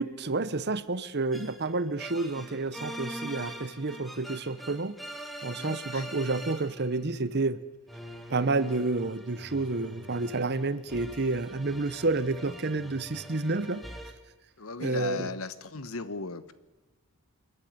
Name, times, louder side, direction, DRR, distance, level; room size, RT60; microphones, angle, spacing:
voice 1, 0.0-4.9 5.4-7.6 8.3-13.8 14.8-15.3, right 3 dB, 50° right, 1.0 m, -30 dB
sound 1, 1.3-7.0 7.9-14.1, equal, ahead, 1.6 m, -44 dB
voice 2, 5.6-6.1 14.6-16.5, left 4 dB, 70° left, 1.2 m, -37 dB
28.5 x 11.0 x 9.5 m
head